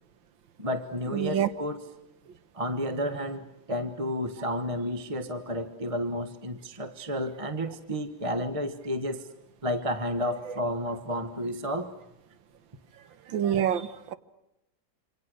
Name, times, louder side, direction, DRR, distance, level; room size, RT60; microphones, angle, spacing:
voice 1, 0.6-1.8 2.5-9.3 9.6-11.9, equal, 20° right, 1.3 m, -31 dB
voice 2, 1.1-1.5 13.3-14.1, right 10 dB, 80° right, 1.9 m, -26 dB
27.5 x 26.0 x 6.4 m
omnidirectional pair, 2.0 m